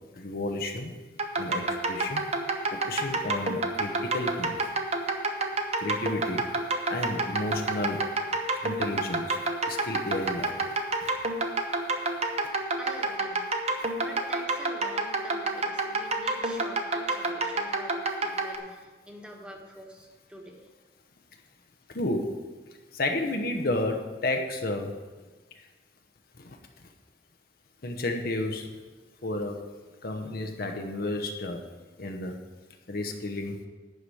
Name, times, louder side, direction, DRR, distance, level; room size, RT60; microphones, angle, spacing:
voice 1, 0.2-0.9 1.4-2.2 2.7-4.6 5.8-6.4 6.9-8.0 8.6-9.4 9.7-10.5 21.9-22.3 22.9-24.9 26.4-26.6 27.8-28.7 29.2-29.6 30.0-31.6 32.0-32.3 32.9-33.6, left 2 dB, 55° left, 4 dB, 0.9 m, -31 dB
sound 1, 1.2-18.6, right 2 dB, 35° right, 1.0 m, -29 dB
voice 2, 12.3-13.4 14.0-20.7, equal, 5° right, -1 dB, 1.5 m, -46 dB
11.5 x 4.9 x 8.4 m, 1.3 s
head